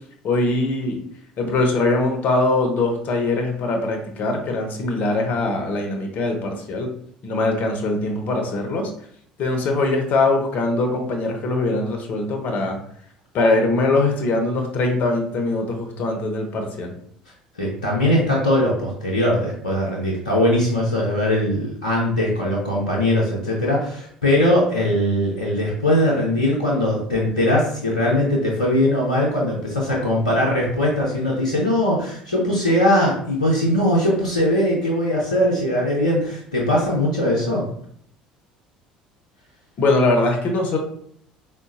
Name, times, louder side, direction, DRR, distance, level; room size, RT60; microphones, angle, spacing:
voice 1, 0.2-1.0 1.4-6.9 7.2-8.9 9.4-12.8 13.3-16.9 39.8-40.8, left 2 dB, 50° left, 3 dB, 0.7 m, -22 dB
voice 2, 17.6-37.7, left 1 dB, 90° left, -4 dB, 0.6 m, -20 dB
3.8 x 2.2 x 2.5 m, 0.63 s
hypercardioid pair, 65°, 4 cm